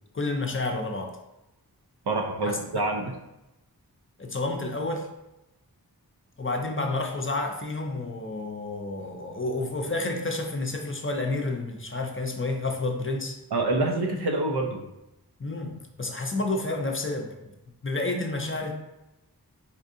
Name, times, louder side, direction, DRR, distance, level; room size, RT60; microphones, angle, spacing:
voice 1, 0.1-1.2 2.4-2.8 4.2-5.1 6.4-13.4 15.4-17.3 17.8-18.8, left 2 dB, 35° left, 3 dB, 0.5 m, -30 dB
voice 2, 2.1-3.2 13.5-14.8, right 2 dB, 85° right, 3 dB, 0.5 m, -26 dB
4.2 x 2.6 x 2.5 m, 0.93 s
wide cardioid pair, 40°, 38 cm